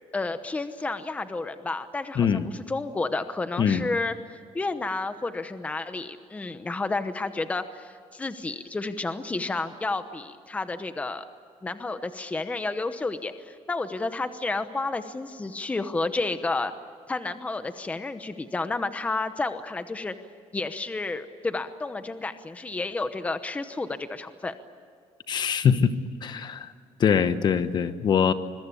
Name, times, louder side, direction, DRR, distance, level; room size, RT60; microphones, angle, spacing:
voice 1, 0.1-11.2 11.6-16.7 17.1-20.1 20.5-24.5, left 3 dB, 10° left, 10 dB, 0.9 m, -31 dB
voice 2, 2.2-2.5 3.6-3.8 25.3-25.9 26.2-26.7 27.0-28.3, left 7 dB, 40° left, 11 dB, 1.1 m, -23 dB
25.5 x 22.5 x 8.5 m, 2.2 s
cardioid pair, 160°, 12 cm